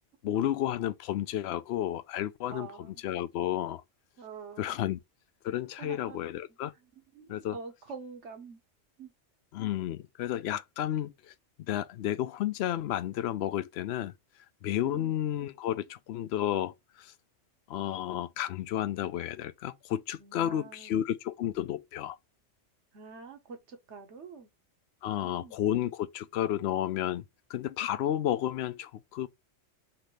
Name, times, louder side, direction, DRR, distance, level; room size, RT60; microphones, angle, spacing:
voice 1, 0.2-3.8 4.6-5.0 5.4-6.7 7.3-7.6 9.5-11.3 11.7-14.1 14.6-17.1 17.7-22.2 25.0-27.2 27.5-29.3, left 11 dB, 65° left, 0.8 m, -32 dB
voice 2, 2.5-2.9 4.2-4.8 5.8-6.2 7.1-8.6 9.0-9.1 14.8-15.2 20.2-21.0 22.9-24.5 25.2-25.6, right 5 dB, 65° right, 1.5 m, -46 dB
5.8 x 2.7 x 3.2 m
omnidirectional pair, 1.3 m